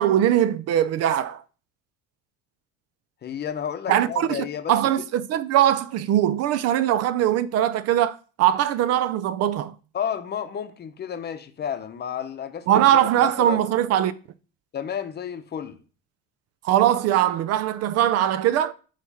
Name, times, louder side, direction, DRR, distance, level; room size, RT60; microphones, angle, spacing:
voice 1, 0.0-1.4 3.9-9.7 12.7-14.1 16.6-18.7, right 11 dB, 55° right, 0.5 m, -21 dB
voice 2, 3.2-4.7 9.9-13.6 14.7-15.8, left 8 dB, 35° left, 0.8 m, -31 dB
8.2 x 3.2 x 5.6 m
cardioid pair, 130°, 30 cm